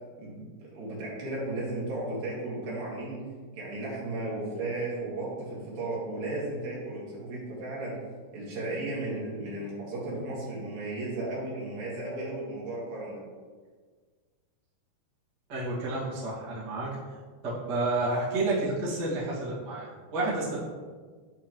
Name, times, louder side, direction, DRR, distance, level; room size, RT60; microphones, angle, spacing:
voice 1, 0.2-3.2 3.5-7.9 8.3-13.2, right 2 dB, 65° right, -6 dB, 3.3 m, -35 dB
voice 2, 15.5-16.9 17.4-20.6, right 2 dB, 40° right, -9 dB, 1.6 m, -30 dB
11.0 x 4.1 x 3.0 m, 1.5 s
omnidirectional pair, 4.7 m